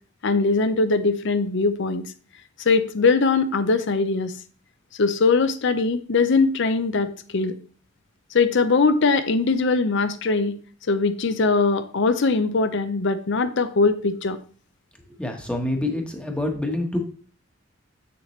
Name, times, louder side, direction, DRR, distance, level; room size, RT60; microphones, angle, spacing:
voice 1, 0.2-2.1 2.6-4.3 5.0-7.6 8.3-10.6 10.9-14.4, left 4 dB, 65° left, 11 dB, 0.7 m, -21 dB
voice 2, 15.1-17.0, left 1 dB, 5° left, 3 dB, 1.2 m, -27 dB
7.5 x 6.8 x 3.1 m, 0.41 s
head